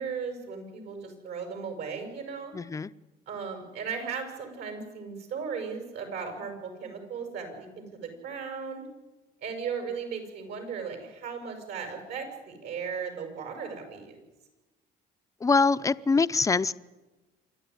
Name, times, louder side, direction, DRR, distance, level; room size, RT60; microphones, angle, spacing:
voice 1, 0.0-2.5 3.3-8.9 9.4-14.2, right 6 dB, 75° right, 4 dB, 6.8 m, -36 dB
voice 2, 2.5-2.9 15.4-16.7, left 4 dB, 20° left, 14 dB, 0.6 m, -24 dB
27.0 x 12.0 x 9.8 m, 1.1 s
cardioid pair, 110°, 17 cm